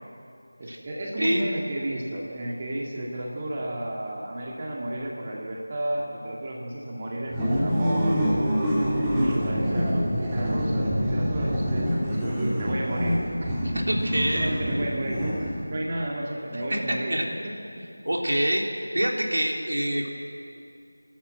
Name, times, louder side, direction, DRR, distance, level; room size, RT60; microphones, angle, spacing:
voice 1, 0.6-8.2 9.2-17.8, right 1 dB, 30° right, -2 dB, 2.1 m, -32 dB
sound 1, 7.3-15.8, equal, 10° right, 2.5 m, -26 dB
voice 2, 13.7-14.5 16.7-16.8 17.1-17.2 18.0-18.6 18.9-20.1, right 1 dB, 70° right, 0 dB, 3.6 m, -25 dB
29.0 x 12.5 x 7.8 m, 2.5 s
figure-of-eight pair, 170°, 0 cm